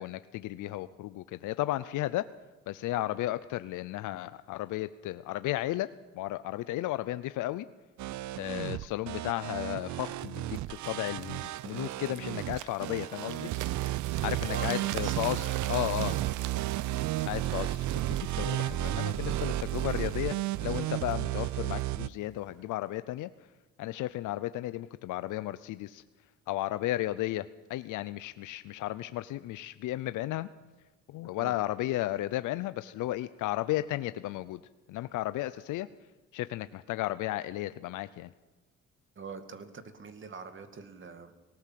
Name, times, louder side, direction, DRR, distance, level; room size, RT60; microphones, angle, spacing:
voice 1, 0.0-2.3 2.7-7.7 8.4-13.5 14.2-16.1 17.2-23.3 23.8-26.0 26.5-30.5 31.1-34.6 34.9-35.9 36.3-38.3, left 15 dB, 85° left, 14 dB, 0.6 m, -34 dB
sound 1, 8.0-22.1, right 15 dB, 70° right, 0.5 m, -33 dB
sound 2, 10.1-21.9 22.5-22.7, right 14 dB, 90° right, 0.9 m, -45 dB
voice 2, 14.2-16.3 31.4-31.5 39.2-41.4, right 4 dB, 40° right, 9 dB, 2.3 m, -44 dB
19.0 x 18.5 x 7.6 m, 1.2 s
cardioid pair, 90°, 30 cm